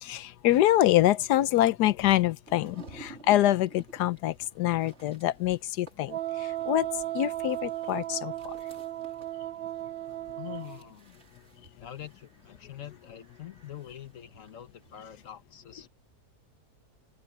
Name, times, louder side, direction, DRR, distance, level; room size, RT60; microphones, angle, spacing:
voice 1, 0.0-8.5, left 14 dB, 90° left, 1.3 m, -25 dB
sound 1, 2.5-15.3, right 3 dB, 40° right, 3.1 m, -55 dB
Wind instrument woodwind instrument, 6.1-10.8, right 14 dB, 90° right, 0.5 m, -35 dB
voice 2, 10.4-11.2 11.7-15.9, left 11 dB, 55° left, 1.3 m, -44 dB
open air
omnidirectional pair, 1.7 m